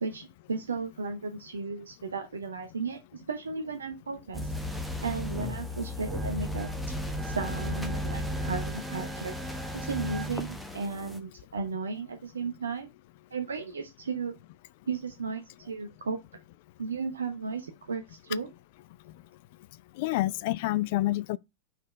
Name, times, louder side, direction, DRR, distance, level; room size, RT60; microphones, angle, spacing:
voice 1, 0.0-4.5 5.0-6.7 7.2-12.9 13.3-14.3 14.9-16.2 16.8-18.5, right 4 dB, 70° right, 0.8 m, -35 dB
sound 1, 4.3-11.2, left 1 dB, ahead, 0.9 m, -34 dB
voice 2, 20.0-21.4, left 17 dB, 50° left, 0.4 m, -28 dB
5.4 x 4.2 x 4.4 m
figure-of-eight pair, 90°, 0 cm